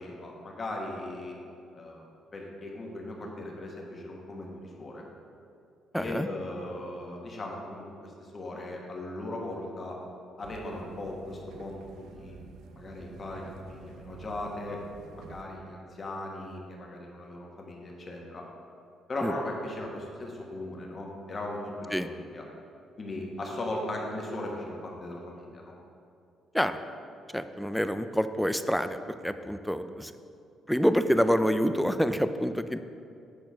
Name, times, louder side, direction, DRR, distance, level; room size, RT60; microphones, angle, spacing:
voice 1, 0.0-1.4 1.7-2.0 2.3-5.0 5.9-10.0 10.4-12.4 12.7-14.8 15.1-18.4 19.1-22.4 23.0-25.7, left 1 dB, 30° left, -1 dB, 1.3 m, -38 dB
voice 2, 5.9-6.3 19.2-19.3 21.9-22.1 26.5-26.8 27.3-30.1 30.7-32.8, equal, ahead, 10 dB, 0.3 m, -27 dB
sound 1, 10.4-15.4, right 4 dB, 85° right, 0.5 m, -50 dB
8.5 x 4.4 x 5.7 m, 2.5 s
cardioid pair, 130°, 0 cm